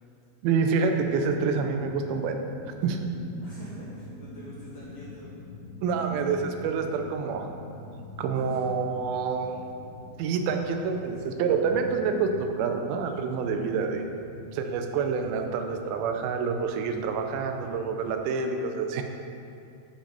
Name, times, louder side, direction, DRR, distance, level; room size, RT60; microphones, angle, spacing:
voice 1, 0.4-2.4 2.6-3.0 5.8-7.5 8.2-9.5 10.2-14.0 14.5-19.0, right 5 dB, 90° right, 5 dB, 2.5 m, -27 dB
sound 1, 1.0-18.2, left 2 dB, 85° left, 3.2 m, -45 dB
voice 2, 3.4-5.3 8.4-8.6 10.6-11.4, left 1 dB, 65° left, -7 dB, 1.8 m, -46 dB
7.1 x 5.1 x 5.2 m, 2.6 s
omnidirectional pair, 4.2 m